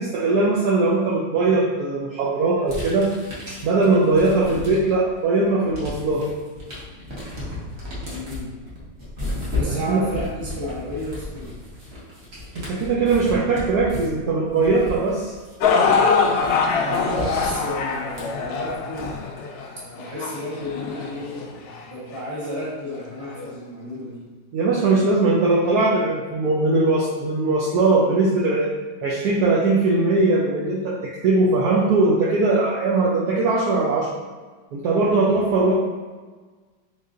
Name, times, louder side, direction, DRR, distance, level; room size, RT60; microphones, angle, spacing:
voice 1, 0.0-3.1 3.5-6.2 9.7-10.0 12.5-15.4 24.5-28.7 29.0-34.1 34.7-35.7, right 3 dB, 75° right, -4 dB, 0.9 m, -20 dB
sound 1, 2.7-5.1 5.4-19.4, left 2 dB, 40° right, 1.1 m, -34 dB
voice 2, 8.0-8.5 9.5-11.5 16.9-19.1 19.9-24.2, equal, 20° right, -7 dB, 1.0 m, -32 dB
sound 2, 15.6-21.8 22.5-22.6 23.4-23.5, left 5 dB, 75° left, 0.9 m, -23 dB
3.9 x 3.9 x 2.5 m, 1.4 s
omnidirectional pair, 2.1 m